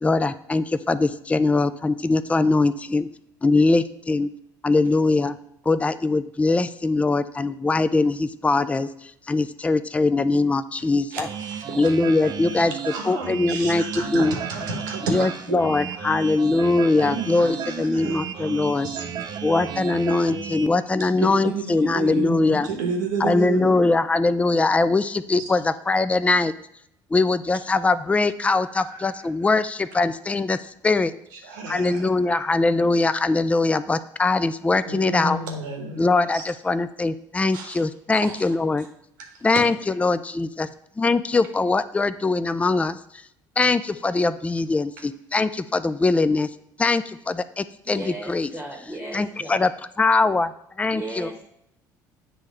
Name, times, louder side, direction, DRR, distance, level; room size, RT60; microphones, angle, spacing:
voice 1, 0.0-3.1 3.4-4.3 4.6-5.4 5.7-8.9 9.3-11.3 11.7-13.8 14.1-14.3 15.1-18.9 19.4-22.7 23.2-26.5 27.1-30.6 30.8-31.1 31.7-35.4 36.0-38.9 39.4-40.7 41.0-43.0 43.6-46.5 46.8-48.5 49.1-49.7 50.0-50.5 50.8-51.3, left 3 dB, 15° left, 14 dB, 0.4 m, -22 dB
voice 2, 11.1-11.9 12.9-15.7 15.9-16.0 17.0-19.5 21.2-23.9 25.4-25.5 28.5-29.5 31.3-32.1 34.8-36.4 37.5-37.8 38.1-38.5 38.8-38.9, right 4 dB, 90° right, 3 dB, 1.2 m, -32 dB
sound 1, 11.2-20.7, right 8 dB, 45° right, 0.6 m, -34 dB
voice 3, 47.9-49.6 50.9-51.4, right 1 dB, 15° right, 0 dB, 1.1 m, -35 dB
7.7 x 3.2 x 4.9 m, 0.76 s
hypercardioid pair, 70°, 10 cm